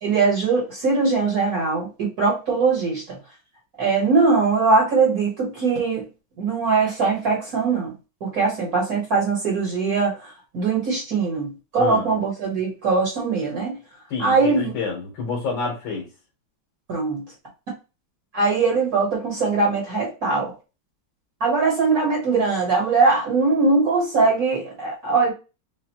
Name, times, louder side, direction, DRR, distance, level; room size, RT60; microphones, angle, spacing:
voice 1, 0.0-3.2 3.8-6.0 6.4-7.9 8.2-13.8 14.2-14.7 16.9-17.2 18.3-20.5 21.4-25.3, right 4 dB, 50° right, -2 dB, 1.7 m, -21 dB
voice 2, 14.1-16.1, left 4 dB, 80° left, -2 dB, 2.0 m, -28 dB
5.3 x 2.4 x 2.9 m, 0.31 s
omnidirectional pair, 2.1 m